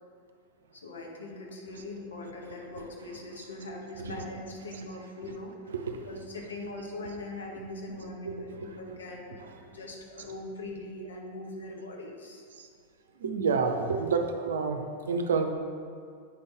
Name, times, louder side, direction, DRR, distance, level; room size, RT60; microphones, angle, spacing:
voice 1, 0.7-5.5 6.0-9.4 9.7-12.4, left 2 dB, 70° left, -1 dB, 1.2 m, -41 dB
voice 2, 5.7-6.1 8.3-8.7 12.6-12.7 13.2-15.5, right 5 dB, 65° right, 5 dB, 0.6 m, -29 dB
8.6 x 5.4 x 3.4 m, 2.3 s
figure-of-eight pair, 90°, 0 cm